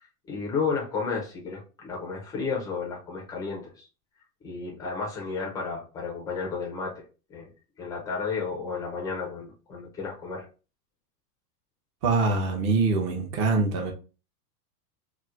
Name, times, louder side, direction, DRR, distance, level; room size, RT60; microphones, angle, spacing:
voice 1, 0.3-3.9 4.4-7.0 7.3-7.5 7.8-10.4, left 5 dB, 10° left, 0.3 m, -32 dB
voice 2, 12.0-13.9, right 3 dB, 35° right, 0.8 m, -24 dB
4.2 x 2.1 x 2.3 m
supercardioid pair, 135°, 46 cm